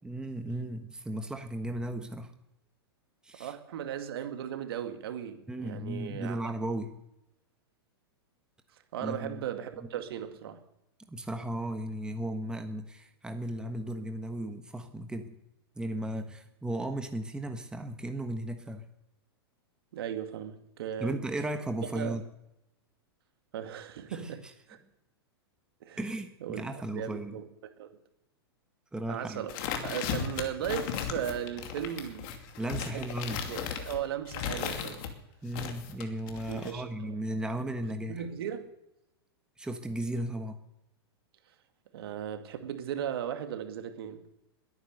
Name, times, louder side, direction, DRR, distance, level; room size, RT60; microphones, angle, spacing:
voice 1, 0.0-2.3 3.2-3.5 5.5-6.9 9.0-9.4 9.8-9.9 11.1-15.4 15.8-18.9 21.0-22.2 24.1-24.3 26.0-27.4 28.9-29.5 32.6-33.4 35.4-38.2 39.6-40.6, right 1 dB, 5° right, 1.3 m, -35 dB
voice 2, 3.4-6.5 8.9-10.6 19.9-21.2 21.9-22.2 23.5-24.8 25.8-26.0 26.4-27.5 27.8-28.0 29.1-29.5 29.8-32.3 32.9-33.0 33.5-35.1 36.5-37.2 38.1-38.7 41.9-44.3, right 9 dB, 65° right, 2.2 m, -37 dB
sound 1, 29.5-35.1 35.5-36.7, left 8 dB, 50° left, 2.6 m, -36 dB
21.0 x 9.6 x 6.7 m
hypercardioid pair, 110°, 13 cm